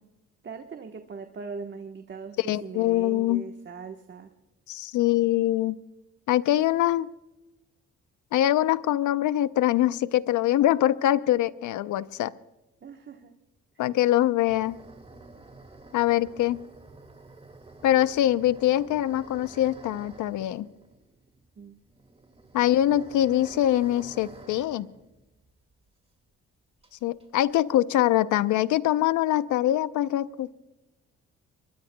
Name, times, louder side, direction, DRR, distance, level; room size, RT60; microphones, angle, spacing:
voice 1, 0.4-4.3 12.8-13.3 21.6-21.8, right 5 dB, 35° right, 5 dB, 1.2 m, -40 dB
voice 2, 2.4-3.5 4.7-5.8 6.3-7.1 8.3-12.3 13.8-14.8 15.9-16.6 17.8-20.7 22.5-24.9 27.0-30.5, left 13 dB, 75° left, 15 dB, 0.7 m, -23 dB
sound 1, 14.5-25.9 26.2-26.3 26.8-27.6, right 2 dB, 20° right, 2.2 m, -50 dB
24.0 x 23.0 x 2.2 m, 1.0 s
cardioid pair, 90°, 30 cm